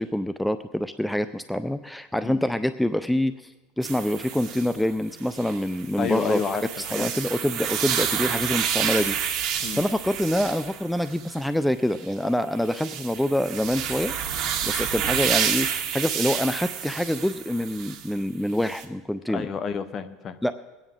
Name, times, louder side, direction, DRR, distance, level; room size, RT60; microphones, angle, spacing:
voice 1, 0.0-6.4 6.8-9.2 9.7-14.1 14.6-19.5 20.4-20.5, left 1 dB, 5° left, 12 dB, 0.3 m, -26 dB
sound 1, 3.8-4.8 5.2-11.4 11.9-12.1 12.6-18.1 18.6-18.8, right 9 dB, 50° right, 1.7 m, -29 dB
voice 2, 6.0-7.1 9.6-9.8 19.3-20.4, left 6 dB, 35° left, 13 dB, 0.8 m, -30 dB
21.5 x 9.1 x 3.6 m, 1.2 s
supercardioid pair, 120°, 0 cm